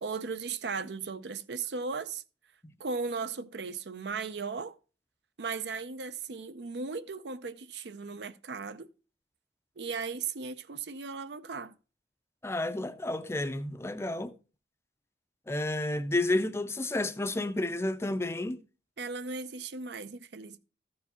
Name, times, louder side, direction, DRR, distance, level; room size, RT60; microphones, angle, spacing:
voice 1, 0.0-2.2 2.8-4.8 5.4-8.9 9.8-11.7 19.0-20.6, right 4 dB, 75° right, 0.6 m, -36 dB
voice 2, 12.4-14.3 15.5-18.6, left 2 dB, 15° left, 0.4 m, -31 dB
14.0 x 4.7 x 4.2 m
head